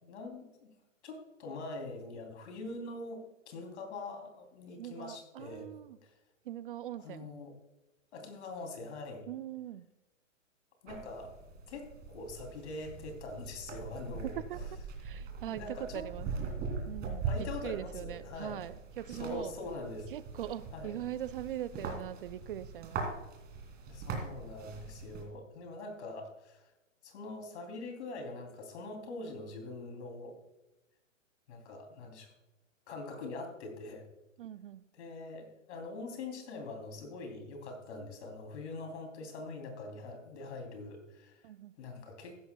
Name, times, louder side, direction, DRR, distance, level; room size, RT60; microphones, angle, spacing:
voice 1, 0.0-0.7 1.0-5.7 6.0-6.1 7.0-7.5 8.1-9.3 10.8-11.3 11.7-14.4 15.4-16.0 17.2-18.7 19.1-20.1 20.7-21.0 23.9-26.7 27.0-30.4 31.5-32.3 32.9-34.0 35.0-41.5 41.8-42.4, left 2 dB, 60° left, 4 dB, 3.2 m, -43 dB
voice 2, 4.8-6.0 6.4-7.3 9.3-9.9 14.3-14.6 15.0-16.3 16.8-19.5 20.1-23.1 34.4-34.9 41.4-41.8, right 12 dB, 45° right, 15 dB, 0.4 m, -41 dB
sound 1, 10.9-25.2, right 4 dB, 25° right, 2.7 m, -41 dB
15.0 x 12.0 x 2.3 m, 1.0 s
hypercardioid pair, 135°, 39 cm